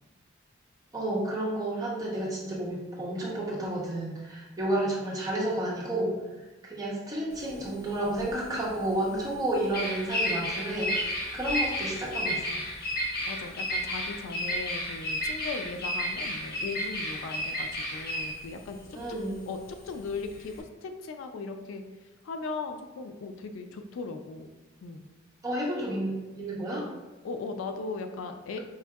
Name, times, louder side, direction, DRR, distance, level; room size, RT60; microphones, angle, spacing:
voice 1, 0.9-6.1 6.6-12.6 18.9-19.4 25.4-26.9, right 1 dB, 15° right, -5 dB, 0.7 m, -31 dB
Bird vocalization bird call bird song, 7.3-20.6, equal, 50° left, 0.8 m, -32 dB
voice 2, 13.3-18.8 19.5-21.8 22.2-24.5 24.8-25.1 27.2-28.6, left 4 dB, 75° left, 7 dB, 0.3 m, -38 dB
4.6 x 2.6 x 2.3 m, 1.2 s
head